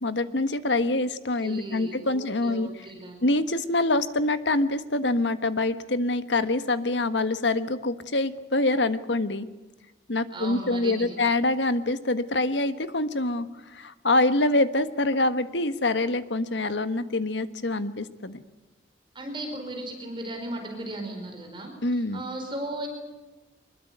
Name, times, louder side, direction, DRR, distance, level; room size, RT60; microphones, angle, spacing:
voice 1, 0.0-2.7 3.2-9.5 10.1-18.4 21.8-22.2, left 2 dB, 85° left, 12 dB, 1.5 m, -25 dB
voice 2, 1.4-3.2 10.3-11.2 19.1-22.9, right 1 dB, 25° right, 3 dB, 4.9 m, -36 dB
24.0 x 21.0 x 9.5 m, 1.1 s
head